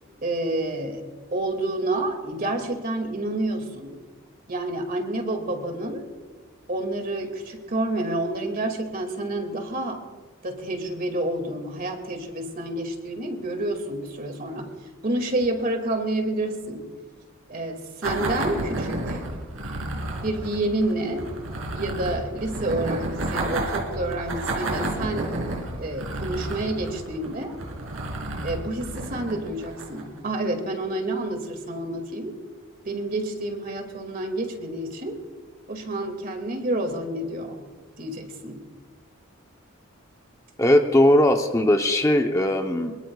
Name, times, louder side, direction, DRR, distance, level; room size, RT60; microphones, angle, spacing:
voice 1, 0.2-1.0 1.3-4.0 4.5-6.1 6.7-10.0 10.4-14.7 15.0-16.9 17.5-19.2 20.2-21.3 21.7-25.3 25.8-27.6 28.4-32.4 32.8-35.2 35.7-37.7 38.0-38.7, right 1 dB, 45° right, 4 dB, 2.2 m, -29 dB
sound 1, 18.0-30.2, right 1 dB, 90° right, 2.8 m, -31 dB
voice 2, 40.6-43.0, left 1 dB, 15° left, 4 dB, 0.8 m, -19 dB
24.0 x 22.0 x 2.4 m, 1.4 s
head